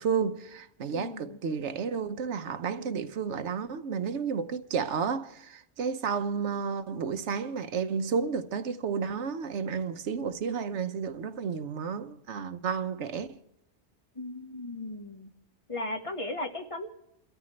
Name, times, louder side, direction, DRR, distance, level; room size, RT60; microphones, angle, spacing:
voice 1, 0.0-13.4, right 6 dB, 90° right, 1.2 m, -32 dB
voice 2, 0.9-1.4 2.8-3.0 14.1-15.3 15.7-16.9, left 2 dB, 30° left, 1.7 m, -37 dB
29.0 x 13.5 x 3.2 m
omnidirectional pair, 1.2 m